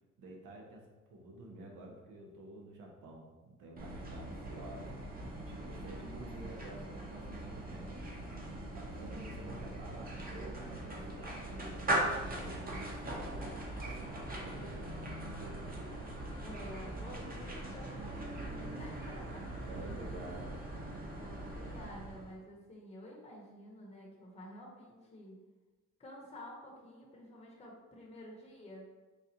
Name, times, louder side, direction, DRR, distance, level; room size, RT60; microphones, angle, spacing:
voice 1, 0.2-5.0 5.4-7.9 8.7-13.4 13.8-15.7 19.7-20.6, right 2 dB, 85° right, 0 dB, 0.8 m, -50 dB
sound 1, 3.8-22.4, right 1 dB, 30° right, 0.8 m, -40 dB
voice 2, 16.4-19.6 21.0-25.4 26.0-28.8, equal, 20° left, -3 dB, 0.8 m, -50 dB
4.1 x 2.4 x 2.7 m, 1.2 s
cardioid pair, 90°, 30 cm